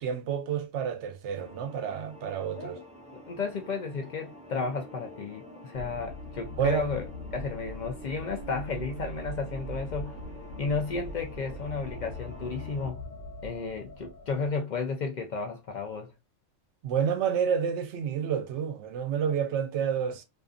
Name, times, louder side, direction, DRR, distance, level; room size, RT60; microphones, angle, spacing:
voice 1, 0.0-2.8 6.6-6.9 16.8-20.2, right 8 dB, 75° right, 0.9 m, -29 dB
sound 1, 1.4-12.9, equal, 10° right, 0.4 m, -48 dB
voice 2, 3.1-7.1 7.3-10.2 10.6-13.0 13.4-16.1, left 4 dB, 55° left, 0.5 m, -33 dB
sound 2, 5.7-14.5, left 1 dB, 85° left, 1.0 m, -41 dB
2.5 x 2.4 x 2.3 m
omnidirectional pair, 1.2 m